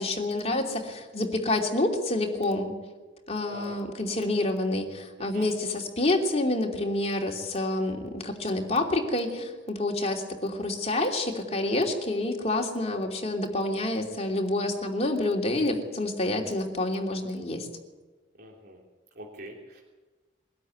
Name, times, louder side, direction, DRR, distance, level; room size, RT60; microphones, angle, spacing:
voice 1, 0.0-2.7 3.3-17.7, left 2 dB, 35° left, 1 dB, 3.1 m, -28 dB
voice 2, 3.5-3.8 5.2-5.5 18.4-18.8 19.1-19.8, right 1 dB, 60° right, -2 dB, 3.3 m, -44 dB
23.0 x 13.0 x 9.5 m, 1.3 s
head